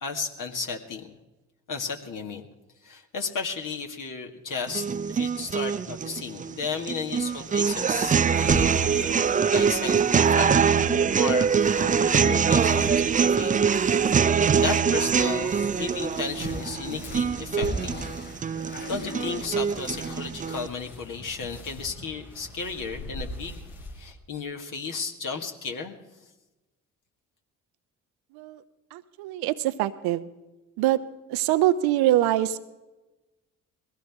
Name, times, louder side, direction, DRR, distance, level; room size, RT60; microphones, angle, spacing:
voice 1, 0.0-1.1 1.7-2.5 2.8-8.2 9.5-11.5 11.8-13.7 14.2-18.0 18.9-23.6 23.9-26.0, left 5 dB, 55° left, 3 dB, 2.0 m, -34 dB
sound 1, 4.7-20.7, right 7 dB, 20° right, 0.4 m, -24 dB
sound 2, 7.2-20.6, left 3 dB, 25° left, 1.4 m, -43 dB
sound 3, 7.5-24.1, left 1 dB, 75° left, 3.3 m, -40 dB
voice 2, 28.9-30.3 30.8-31.0 31.3-32.6, right 14 dB, 75° right, 12 dB, 0.8 m, -24 dB
21.5 x 17.0 x 3.6 m, 1.1 s
hypercardioid pair, 45°, 38 cm